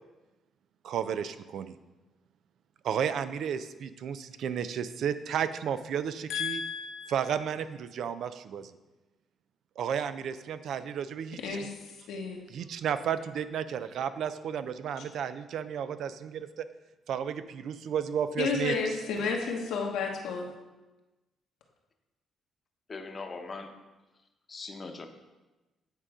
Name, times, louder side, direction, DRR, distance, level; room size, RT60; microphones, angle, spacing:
voice 1, 0.8-1.8 2.8-6.6 7.1-8.7 9.8-11.6 12.5-16.7 17.1-18.7, right 8 dB, 70° right, 12 dB, 0.4 m, -33 dB
voice 2, 6.3-7.4 11.4-12.4 18.4-20.5, left 5 dB, 90° left, 1 dB, 1.1 m, -32 dB
voice 3, 22.9-23.7 24.5-25.1, left 3 dB, 35° left, 5 dB, 0.8 m, -40 dB
9.0 x 3.8 x 4.8 m, 1.1 s
cardioid pair, 90°, 0 cm